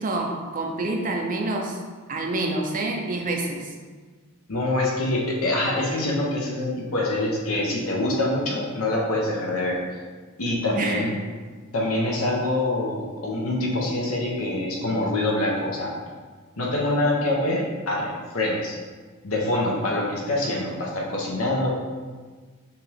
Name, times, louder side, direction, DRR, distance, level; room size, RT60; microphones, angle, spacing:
voice 1, 0.0-1.8 2.1-3.7 10.7-11.1, right 2 dB, 40° right, 1 dB, 0.5 m, -27 dB
voice 2, 4.5-10.0 10.4-11.1 11.7-15.9 16.6-18.8 19.2-21.7, left 1 dB, 80° left, -3 dB, 1.0 m, -25 dB
5.6 x 2.5 x 3.4 m, 1.4 s
head